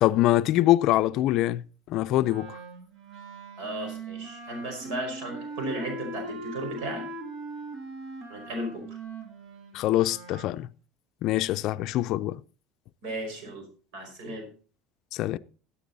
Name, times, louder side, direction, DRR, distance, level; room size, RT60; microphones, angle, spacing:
voice 1, 0.0-1.6 1.9-2.6 9.7-10.7 11.2-12.4 15.1-15.4, left 15 dB, 55° left, 0.4 m, -24 dB
Wind instrument woodwind instrument, 2.2-10.5, right 2 dB, 55° right, 2.4 m, -40 dB
voice 2, 3.6-7.1 8.3-8.8 13.0-13.6 13.9-14.4, right 1 dB, 70° right, 5.1 m, -35 dB
14.0 x 8.4 x 4.0 m
supercardioid pair, 130°, 0 cm